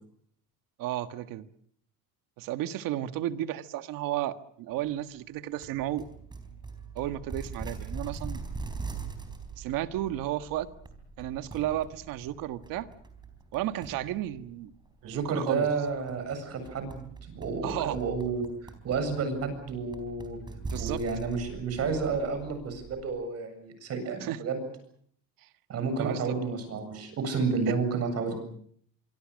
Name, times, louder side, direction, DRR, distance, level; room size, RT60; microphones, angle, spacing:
voice 1, 0.8-1.5 2.4-6.1 6.9-8.4 9.6-10.7 11.2-12.9 13.5-14.7 15.0-15.7 17.6-18.0 20.6-21.0 24.2-24.4 25.4-25.5 26.0-26.4 27.7-27.8, right 13 dB, 65° right, 1.7 m, -33 dB
sound 1, 5.6-23.0, right 4 dB, 10° right, 4.1 m, -42 dB
voice 2, 15.0-20.4 20.8-24.6 25.7-28.4, right 4 dB, 40° right, 7.7 m, -31 dB
26.0 x 24.5 x 6.5 m
cardioid pair, 140°, 36 cm